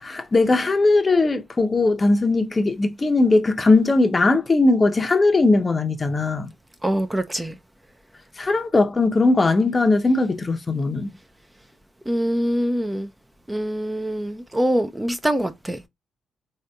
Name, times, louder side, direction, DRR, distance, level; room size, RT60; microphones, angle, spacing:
voice 1, 0.0-6.5 8.4-11.1, left 3 dB, 30° left, 0.6 m, -19 dB
voice 2, 6.8-7.6 12.1-13.1 13.5-15.9, equal, 10° right, 0.4 m, -24 dB
3.4 x 2.6 x 2.2 m
supercardioid pair, 50°, 0 cm